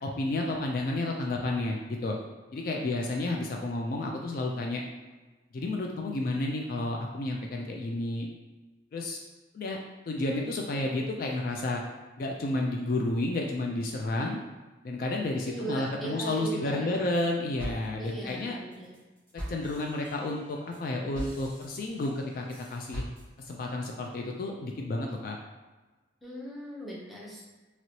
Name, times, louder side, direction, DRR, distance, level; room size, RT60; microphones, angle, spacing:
voice 1, 0.0-2.2 2.5-4.8 5.5-8.3 8.9-9.2 9.5-9.8 10.1-11.8 12.2-14.4 14.8-18.6 19.5-22.4 22.7-23.0 23.4-25.4, left 2 dB, 50° left, 1 dB, 0.3 m, -31 dB
voice 2, 15.4-17.0 18.0-18.9 26.2-27.4, right 1 dB, ahead, -6 dB, 0.6 m, -38 dB
sound 1, 16.7-17.3 17.6-23.6, equal, 25° left, 1.3 m, -42 dB
3.0 x 2.9 x 2.7 m, 1.2 s
head